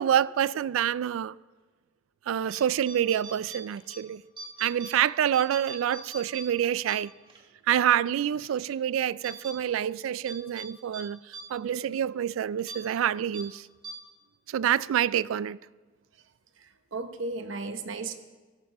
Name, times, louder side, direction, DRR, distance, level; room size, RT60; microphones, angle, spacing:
voice 1, 0.0-1.4 2.3-4.2 4.6-7.1 7.7-13.7 14.5-15.6, right 10 dB, 85° right, 0.3 m, -27 dB
sound 1, 2.4-2.6 2.9-4.0 4.4-4.9 5.3-7.4 7.8-7.9 8.4-8.7 9.2-9.5 10.2-10.7 10.9-11.0 11.3-11.4 11.8-11.9 12.6-12.8 13.3-13.4 13.8-13.9, right 3 dB, 25° right, 1.4 m, -42 dB
voice 2, 16.6-18.2, right 3 dB, 70° right, 0.9 m, -35 dB
17.0 x 13.5 x 3.0 m
head